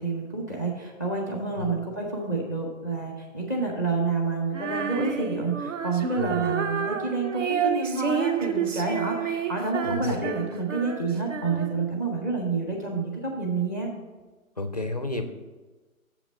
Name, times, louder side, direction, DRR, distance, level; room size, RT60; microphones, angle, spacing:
voice 1, 0.0-13.9, right 3 dB, 15° right, 0 dB, 0.7 m, -28 dB
Female singing, 4.5-11.9, right 7 dB, 60° right, 0.6 m, -30 dB
voice 2, 9.8-10.2 14.6-15.2, left 2 dB, 30° left, 8 dB, 0.4 m, -31 dB
7.2 x 5.1 x 7.2 m, 1.3 s
figure-of-eight pair, 140°, 43 cm